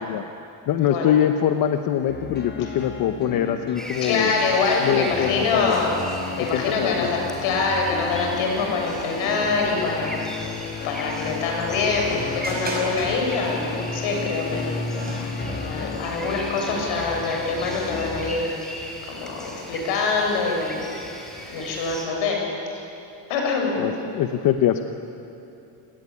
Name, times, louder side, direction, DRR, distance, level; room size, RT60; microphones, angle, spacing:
voice 1, 0.7-4.3 4.8-5.7 6.4-7.1 23.8-24.9, left 10 dB, 45° left, 8 dB, 0.9 m, -23 dB
sound 1, 2.1-18.3, left 4 dB, 20° left, 1.5 m, -34 dB
sound 2, 3.8-22.1, equal, ahead, 3.4 m, -38 dB
voice 2, 4.0-6.0 6.4-10.5 10.8-14.7 15.6-18.5 19.1-20.8 21.5-22.4 23.3-23.9, left 4 dB, 65° left, 1 dB, 7.0 m, -25 dB
sound 3, 8.7-15.4, right 2 dB, 20° right, 5.9 m, -39 dB
28.0 x 18.5 x 9.8 m, 2.8 s
cardioid pair, 165°, 50 cm